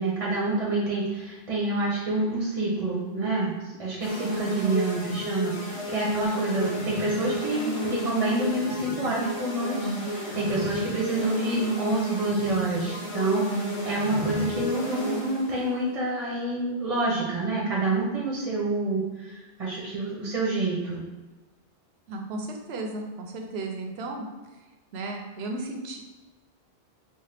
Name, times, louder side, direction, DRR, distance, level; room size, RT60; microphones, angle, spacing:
voice 1, 0.0-3.5 3.8-21.0, right 2 dB, 40° right, -5 dB, 0.7 m, -28 dB
sound 1, 4.0-15.6, left 1 dB, 40° left, 0.7 m, -31 dB
voice 2, 22.1-24.2 24.9-26.0, right 2 dB, 80° right, 2 dB, 0.8 m, -34 dB
4.2 x 2.1 x 3.2 m, 1.2 s
omnidirectional pair, 1.1 m